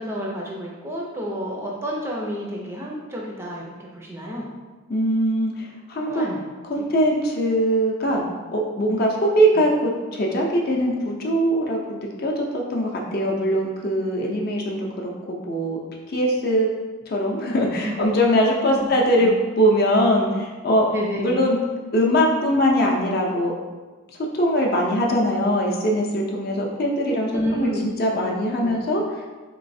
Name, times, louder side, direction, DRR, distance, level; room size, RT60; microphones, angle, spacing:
voice 1, 0.0-4.5 6.0-6.5 6.8-6.9 17.8-18.2 18.6-18.9 19.2-19.4 20.9-21.5 27.3-27.8 28.1-28.4 28.6-28.8, equal, 10° right, -3 dB, 0.4 m, -30 dB
voice 2, 4.9-6.3 6.7-8.2 8.5-15.8 16.1-16.7 17.1-20.9 21.2-21.6 21.9-23.5 24.3-29.0, equal, 45° left, -1 dB, 0.5 m, -21 dB
4.0 x 3.0 x 2.6 m, 1.3 s
head